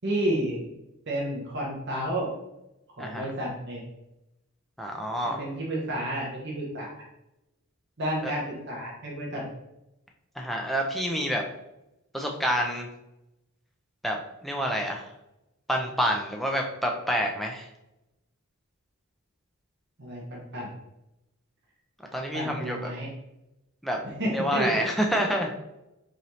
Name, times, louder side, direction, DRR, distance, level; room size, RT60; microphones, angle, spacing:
voice 1, 0.0-0.7 1.1-2.3 3.0-3.8 5.2-7.0 8.0-9.5 20.0-20.7 22.3-23.1 24.0-24.7, right 1 dB, 50° right, -3 dB, 0.9 m, -31 dB
voice 2, 4.8-5.4 8.2-8.3 10.4-11.4 12.1-12.9 14.0-15.1 15.7-17.7 22.1-22.9 23.8-24.0 24.3-25.5, equal, ahead, 1 dB, 0.4 m, -28 dB
4.0 x 2.7 x 3.1 m, 0.90 s
head